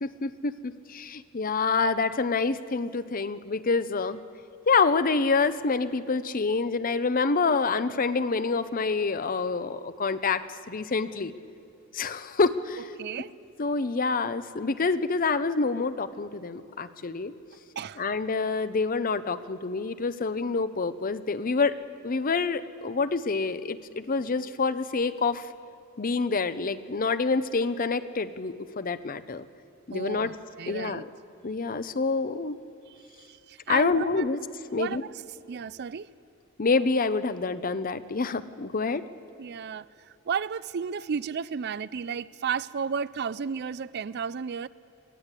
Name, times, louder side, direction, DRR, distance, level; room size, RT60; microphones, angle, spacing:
voice 1, 0.0-4.2 4.7-11.3 11.9-12.9 13.6-17.3 18.0-21.8 22.0-25.5 26.0-29.5 29.9-30.3 30.7-31.1 31.4-32.5 33.7-34.4 34.7-35.0 36.6-39.0, left 4 dB, 40° left, 0.7 m, -27 dB
voice 2, 13.0-13.3 17.8-18.0 29.9-31.0 33.2-34.3 34.7-35.1 35.5-36.1 39.4-44.7, right 6 dB, 55° right, 0.4 m, -33 dB
23.0 x 16.5 x 8.2 m
head